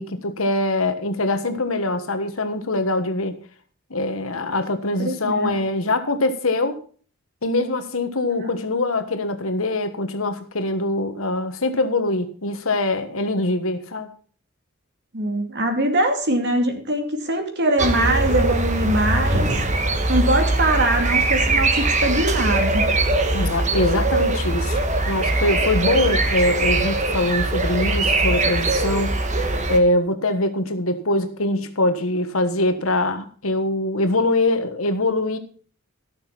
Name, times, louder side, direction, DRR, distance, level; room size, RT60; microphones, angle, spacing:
voice 1, 0.0-3.4 3.9-6.8 7.4-14.1 23.3-24.8 25.0-29.2 29.7-35.4, left 2 dB, 80° left, 1.5 m, -23 dB
voice 2, 5.0-5.6 8.4-8.5 15.1-19.6 20.1-22.9, right 1 dB, 55° right, 2.5 m, -22 dB
sound 1, 17.8-29.8, right 2 dB, 35° right, 1.3 m, -21 dB
14.5 x 6.6 x 5.8 m
head